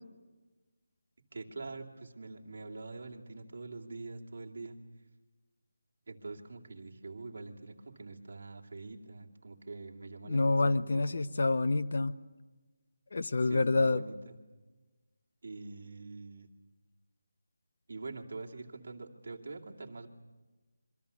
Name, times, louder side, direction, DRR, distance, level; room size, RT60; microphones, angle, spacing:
voice 1, 1.3-4.8 6.1-11.2 13.4-14.3 15.4-16.5 17.9-20.1, right 3 dB, 40° right, -1 dB, 2.6 m, -45 dB
voice 2, 10.2-12.2 13.1-14.0, left 3 dB, 45° left, 12 dB, 0.8 m, -27 dB
26.5 x 24.0 x 7.0 m, 1.2 s
figure-of-eight pair, 180°, 0 cm